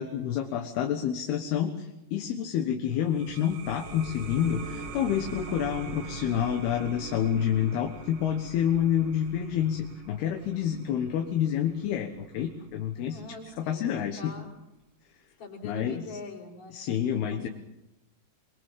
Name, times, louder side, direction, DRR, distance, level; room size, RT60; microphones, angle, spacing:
voice 1, 0.0-13.2 13.6-14.3 15.6-16.0 16.7-17.5, left 9 dB, 70° left, 5 dB, 3.1 m, -28 dB
sound 1, 2.9-14.1, right 5 dB, 85° right, 4.7 m, -43 dB
sound 2, 3.2-11.8, right 5 dB, 65° right, 6.4 m, -52 dB
voice 2, 13.0-13.8 14.2-14.5 15.4-17.5, left 3 dB, 50° left, 0 dB, 5.8 m, -43 dB
23.5 x 23.0 x 7.4 m, 0.90 s
omnidirectional pair, 5.0 m